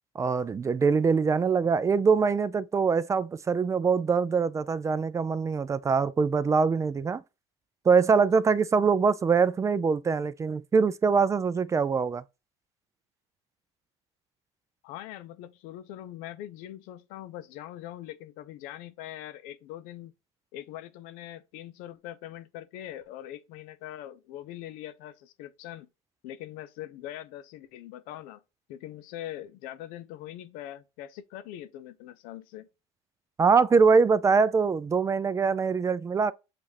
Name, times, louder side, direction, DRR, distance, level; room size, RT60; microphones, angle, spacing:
voice 1, 0.2-7.2 7.9-12.2 33.4-36.3, right 5 dB, 20° right, 0.3 m, -23 dB
voice 2, 14.8-20.1 20.5-25.9 26.2-28.4 28.7-32.7, left 12 dB, 70° left, 0.5 m, -42 dB
6.2 x 2.5 x 2.8 m
supercardioid pair, 90°, 14 cm